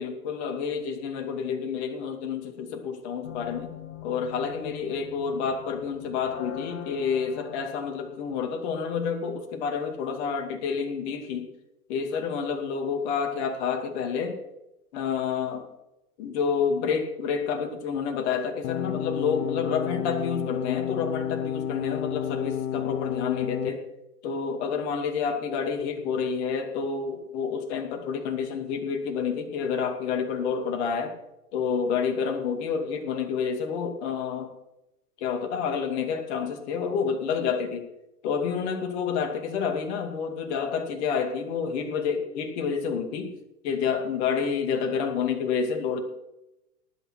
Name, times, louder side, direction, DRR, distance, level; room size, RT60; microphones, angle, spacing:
voice 1, 0.0-3.7 4.0-11.5 11.9-14.4 14.9-15.7 16.2-23.8 24.2-31.1 31.5-34.5 35.2-37.8 38.2-43.3 43.6-46.0, left 6 dB, 45° left, 4 dB, 2.6 m, -29 dB
sound 1, 3.2-8.6, left 10 dB, 60° left, 5.6 m, -43 dB
sound 2, 18.6-23.7, left 10 dB, 20° left, 0.4 m, -30 dB
18.5 x 9.0 x 4.6 m, 0.91 s
figure-of-eight pair, 105°, 46 cm